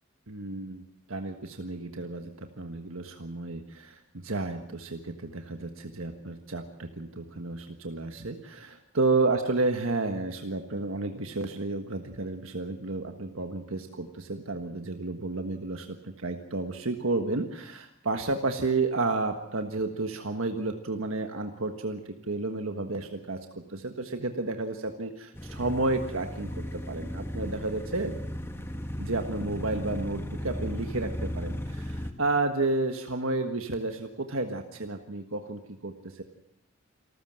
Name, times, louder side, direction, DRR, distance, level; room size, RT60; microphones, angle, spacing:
voice 1, 0.3-28.2 29.0-36.2, right 3 dB, 75° right, 5 dB, 1.5 m, -31 dB
sound 1, 25.3-32.1, equal, 10° left, 1.4 m, -36 dB
27.5 x 14.0 x 7.7 m, 0.78 s
head